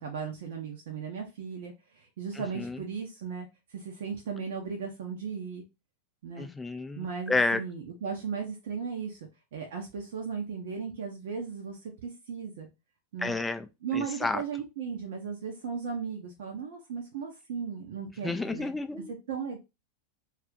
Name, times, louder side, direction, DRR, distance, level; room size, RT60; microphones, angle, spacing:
voice 1, 0.0-5.6 6.2-6.5 7.0-12.7 13.1-13.3 13.8-18.7 19.1-19.6, right 6 dB, 55° right, 0.6 m, -36 dB
voice 2, 6.4-7.6 13.2-13.7 13.9-14.4 18.2-19.1, left 3 dB, 10° left, 0.3 m, -30 dB
2.4 x 2.4 x 3.7 m
figure-of-eight pair, 90°, 0 cm